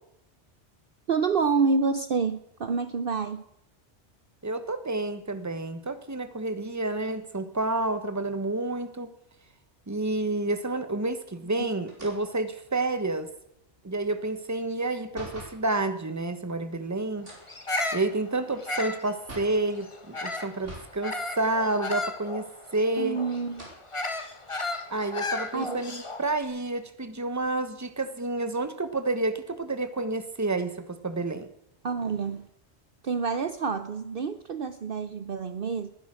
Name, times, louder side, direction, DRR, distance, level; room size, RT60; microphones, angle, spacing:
voice 1, 1.1-3.4 23.0-23.7 25.5-25.8 31.8-32.5 33.0-35.9, right 5 dB, 55° right, 11 dB, 0.9 m, -28 dB
voice 2, 4.4-9.1 9.9-13.3 13.8-17.3 17.9-23.2 24.9-31.5, right 2 dB, 15° right, 10 dB, 1.2 m, -29 dB
sound 1, 11.9-15.7 17.1-19.7 20.6-21.0 21.4-21.5 22.5-23.1 23.4-23.8 24.5-24.6 25.0-26.4, right 1 dB, 90° right, 4.9 m, -47 dB
Bird vocalization bird call bird song, 17.5-20.6 21.0-26.3, left 2 dB, 25° left, 1.4 m, -34 dB
20.0 x 10.5 x 6.4 m, 0.78 s
omnidirectional pair, 1.2 m